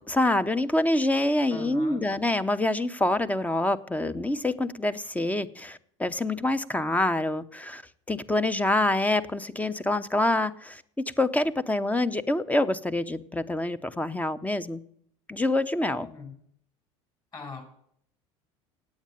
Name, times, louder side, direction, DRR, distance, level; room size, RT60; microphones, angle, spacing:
voice 1, 0.1-7.8 8.1-10.8 11.2-14.8 15.3-16.1, left 2 dB, 10° left, 12 dB, 0.8 m, -26 dB
voice 2, 1.5-2.1 16.0-16.3 17.3-17.6, left 4 dB, 30° left, 5 dB, 5.2 m, -40 dB
8.9 x 8.5 x 8.9 m, 0.66 s
hypercardioid pair, 85°, 16 cm